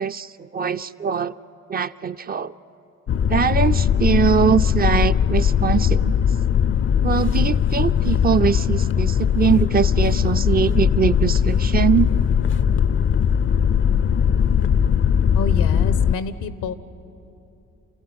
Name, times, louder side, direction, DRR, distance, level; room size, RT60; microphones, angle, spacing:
voice 1, 0.0-1.4 1.7-2.5 3.3-6.1 7.0-12.1, right 7 dB, 30° right, 12 dB, 0.5 m, -22 dB
sound 1, 3.1-16.1, left 8 dB, 40° left, 0.5 m, -19 dB
voice 2, 15.3-16.7, left 5 dB, 90° left, 14 dB, 1.1 m, -28 dB
29.0 x 14.5 x 9.7 m, 2.9 s
cardioid pair, 90°, 30 cm